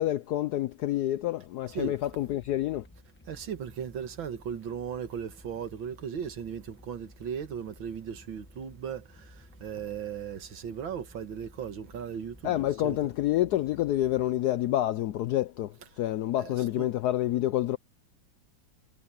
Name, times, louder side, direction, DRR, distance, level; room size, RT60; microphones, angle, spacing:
voice 1, 0.0-2.8 12.4-17.8, left 13 dB, 75° left, 0.9 m, -28 dB
sound 1, 1.7-14.3, left 1 dB, 10° left, 0.6 m, -55 dB
voice 2, 3.3-13.0 16.3-16.9, right 7 dB, 75° right, 2.3 m, -37 dB
omnidirectional pair, 2.2 m